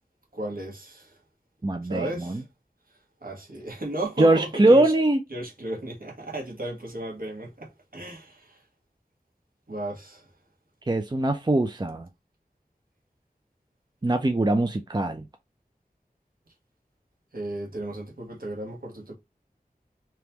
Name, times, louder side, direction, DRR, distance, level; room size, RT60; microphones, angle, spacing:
voice 1, 0.3-1.2 1.8-2.4 3.2-4.9 5.3-8.6 9.7-10.3 17.3-19.1, right 1 dB, 65° right, 1.4 m, -35 dB
voice 2, 1.6-2.4 4.2-5.2 10.9-12.1 14.0-15.3, right 2 dB, 25° right, 0.5 m, -22 dB
3.5 x 3.0 x 2.9 m
wide cardioid pair, 45°, 16 cm